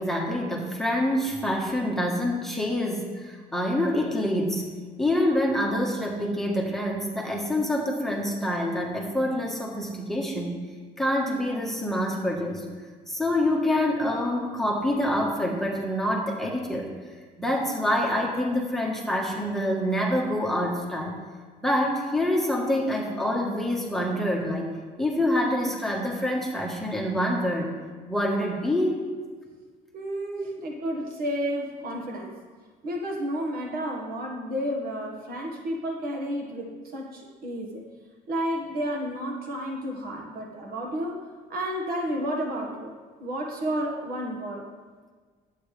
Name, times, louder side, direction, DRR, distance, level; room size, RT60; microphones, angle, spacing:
voice 1, 0.0-4.7 5.0-10.6 11.0-12.6 13.1-16.9 17.4-21.1 21.6-27.8 28.1-29.0 30.4-30.5, left 1 dB, ahead, -1 dB, 1.4 m, -26 dB
voice 2, 29.9-32.4 32.8-37.8 38.3-44.7, equal, 60° right, 1 dB, 1.6 m, -31 dB
11.0 x 8.3 x 3.4 m, 1.5 s
cardioid pair, 110°, 17 cm